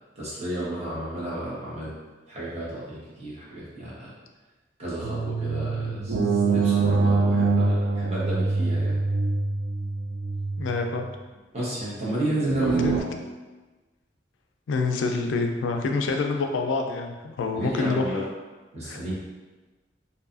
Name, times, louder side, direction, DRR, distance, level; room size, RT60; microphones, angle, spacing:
voice 1, 0.2-1.9 2.3-4.1 4.8-9.0 11.5-13.0 17.5-18.2 18.7-19.2, right 1 dB, 35° right, -8 dB, 0.9 m, -32 dB
sound 1, 5.0-11.1 12.5-13.0, right 3 dB, 80° right, 0.3 m, -24 dB
voice 2, 10.6-11.1 12.8-12.9 14.7-18.2 18.8-19.0, left 3 dB, 85° left, 3 dB, 0.3 m, -27 dB
2.6 x 2.3 x 2.4 m, 1.2 s
head